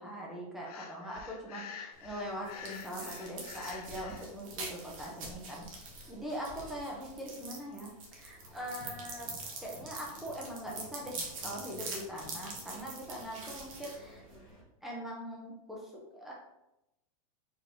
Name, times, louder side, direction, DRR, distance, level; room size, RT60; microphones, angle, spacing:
voice 1, 0.0-9.3 9.6-14.2 14.8-16.3, equal, ahead, -3 dB, 0.5 m, -42 dB
Breathing, 0.6-4.3, left 7 dB, 80° left, 0.5 m, -48 dB
sound 1, 1.9-14.6, right 3 dB, 60° right, 1.1 m, -45 dB
sound 2, 8.4-14.6, left 2 dB, 35° left, 1.1 m, -55 dB
4.6 x 3.3 x 2.6 m, 0.90 s
supercardioid pair, 175°, 19 cm